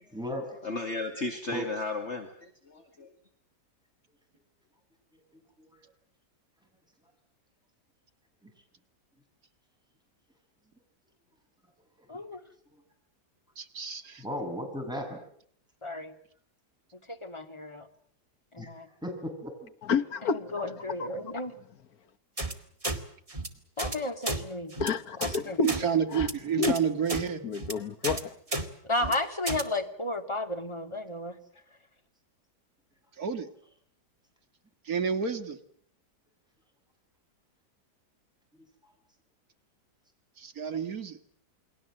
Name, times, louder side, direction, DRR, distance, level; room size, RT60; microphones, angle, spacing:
voice 1, 0.1-0.5 1.5-1.6 8.4-8.5 14.2-15.2 18.6-18.7 19.0-19.7, equal, ahead, 7.4 m, -35 dB
voice 2, 0.6-3.1, left 2 dB, 40° left, 2.5 m, -34 dB
voice 3, 12.1-12.4 15.8-16.1 17.1-17.9 18.5-18.9 20.2-21.6 23.8-24.7 25.2-25.6 28.8-31.4, left 2 dB, 15° left, 2.4 m, -33 dB
voice 4, 13.6-14.2 25.6-27.5 33.1-33.5 34.8-35.6 40.4-41.2, right 7 dB, 60° right, 2.3 m, -30 dB
voice 5, 19.8-20.7 24.8-25.7 26.1-26.3 26.6-26.7 27.4-28.3, left 5 dB, 60° left, 1.7 m, -29 dB
sound 1, 22.4-22.5 22.8-23.0 23.3-23.5 23.8-24.0 24.2-24.4 24.7-24.9 25.2-25.4 25.6-25.8 26.1-26.3 26.6-26.8 27.1-27.2 27.5-27.7 28.0-28.2 28.5-28.6 29.0-29.1 29.5-29.6, right 2 dB, 20° right, 2.0 m, -32 dB
29.0 x 22.0 x 7.7 m
omnidirectional pair, 1.8 m